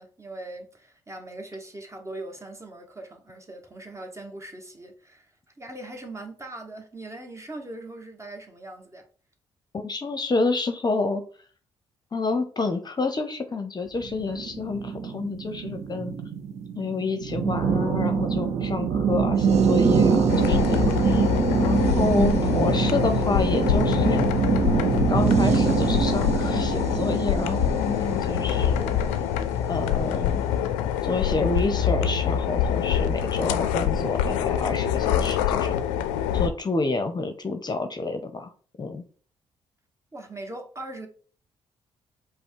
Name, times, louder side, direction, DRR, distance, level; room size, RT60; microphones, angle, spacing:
voice 1, 0.0-9.1 40.1-41.1, right 2 dB, 25° right, 1.3 m, -40 dB
voice 2, 9.7-11.2 12.1-16.1 16.8-21.3 21.6-24.2 25.1-29.0 29.7-30.4 31.0-35.8 36.3-38.5 38.8-39.0, left 3 dB, 35° left, 0.7 m, -28 dB
sound 1, 14.0-29.5, right 6 dB, 60° right, 0.6 m, -24 dB
sound 2, 20.3-36.5, left 9 dB, 85° left, 0.4 m, -25 dB
5.2 x 2.0 x 4.6 m
hypercardioid pair, 45°, 12 cm